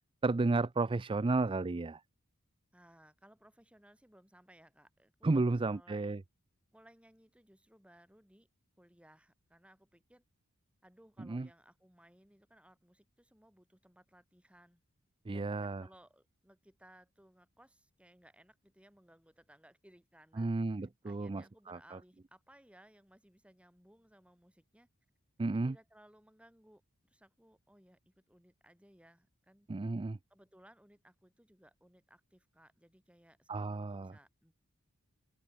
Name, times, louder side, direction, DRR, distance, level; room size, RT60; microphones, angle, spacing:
voice 1, 0.2-2.0 5.2-6.2 11.2-11.5 15.3-15.8 20.4-22.0 25.4-25.8 29.7-30.2 33.5-34.1, right 3 dB, 25° right, 0.4 m, -33 dB
voice 2, 2.7-6.2 6.7-8.5 8.8-10.2 10.8-14.8 15.3-24.9 25.4-29.7 30.3-34.5, right 1 dB, 5° right, 5.1 m, -62 dB
head